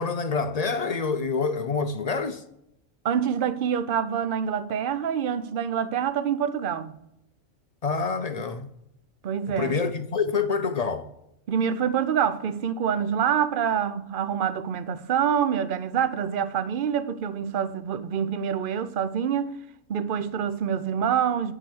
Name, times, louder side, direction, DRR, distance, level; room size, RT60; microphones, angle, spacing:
voice 1, 0.0-2.4 7.8-8.7 9.5-11.1, left 5 dB, 50° left, 0.4 m, -27 dB
voice 2, 3.0-7.0 9.2-9.7 11.5-19.5 19.9-21.5, right 8 dB, 50° right, 0.7 m, -26 dB
9.9 x 4.9 x 7.9 m
omnidirectional pair, 1.4 m